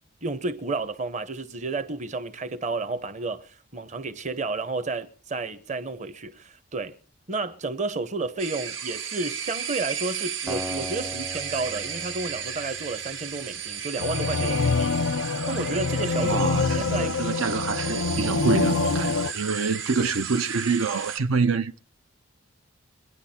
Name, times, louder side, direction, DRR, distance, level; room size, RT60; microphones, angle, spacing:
voice 1, 0.2-7.0 7.3-15.0 15.5-16.4 16.7-17.1, right 3 dB, 35° right, 1.0 m, -31 dB
sound 1, 8.4-21.2, right 8 dB, 60° right, 1.8 m, -34 dB
Acoustic guitar, 10.5-13.6, equal, 5° right, 0.6 m, -38 dB
sound 2, 14.0-19.3, left 4 dB, 90° left, 0.6 m, -25 dB
voice 2, 16.1-21.8, right 4 dB, 75° right, 0.7 m, -26 dB
24.5 x 10.0 x 4.3 m
head